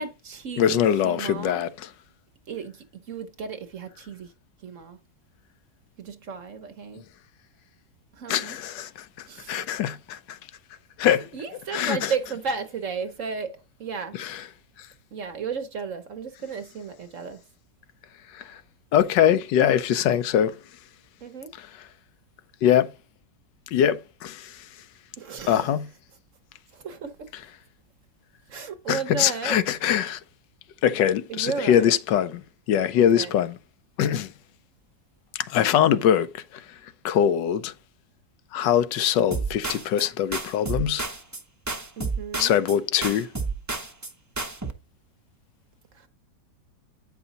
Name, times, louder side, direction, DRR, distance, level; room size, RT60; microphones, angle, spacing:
voice 1, 0.0-1.6 2.5-4.3 4.6-5.0 6.0-7.0 8.1-8.6 9.3-9.7 11.3-14.2 15.1-17.4 21.2-21.5 25.2-25.7 26.7-27.3 28.5-29.6 31.3-31.9 33.0-33.4 42.0-42.5 45.9-46.1, right 5 dB, 55° right, 1.0 m, -34 dB
voice 2, 0.6-1.9 8.3-8.9 9.2-10.4 11.0-11.3 11.7-12.1 14.1-14.4 18.3-18.6 18.9-20.6 21.6-21.7 22.6-22.9 23.7-24.6 25.5-25.9 28.9-30.2 30.8-32.4 32.7-33.6 34.0-34.3 35.3-36.6 37.0-37.7 38.5-41.1 42.4-43.3, left 9 dB, 80° left, 1.3 m, -23 dB
sound 1, 39.3-40.1 40.3-41.4 41.7-42.8 43.0-44.1 44.4-44.7, right 3 dB, 20° right, 0.5 m, -31 dB
8.9 x 5.6 x 4.0 m
omnidirectional pair, 1.9 m